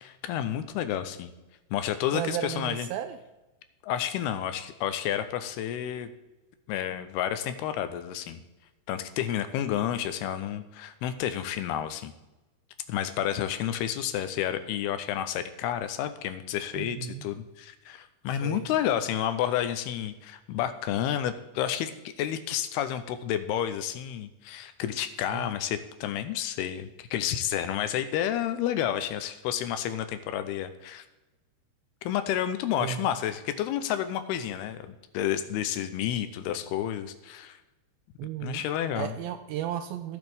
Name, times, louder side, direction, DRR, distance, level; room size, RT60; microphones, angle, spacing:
voice 1, 0.0-1.3 1.7-2.9 3.8-6.1 6.7-8.4 8.9-12.1 12.9-31.0 32.0-37.6 38.4-39.1, left 10 dB, 90° left, 11 dB, 2.6 m, -30 dB
voice 2, 2.1-3.2 16.7-17.2 18.4-18.7 25.3-25.5 32.8-33.1 38.2-38.6 38.9-40.2, right 11 dB, 85° right, 8 dB, 2.1 m, -34 dB
16.0 x 6.2 x 3.6 m, 1.0 s
omnidirectional pair, 4.6 m